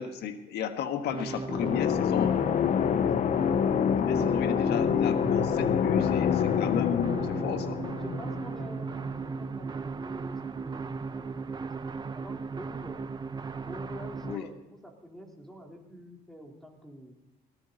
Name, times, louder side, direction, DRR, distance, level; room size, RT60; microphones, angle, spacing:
voice 1, 0.0-2.5 4.0-7.2 7.4-7.7 14.2-14.4, left 8 dB, 75° left, 7 dB, 1.7 m, -33 dB
sound 1, 1.1-14.4, right 4 dB, 25° right, 0.8 m, -36 dB
sound 2, 1.5-9.1, left 9 dB, 45° left, 0.6 m, -27 dB
voice 2, 7.0-7.6 8.0-11.9 12.1-13.1 13.7-17.2, equal, ahead, 0 dB, 3.9 m, -46 dB
18.5 x 18.0 x 4.1 m, 0.90 s
cardioid pair, 110°, 17 cm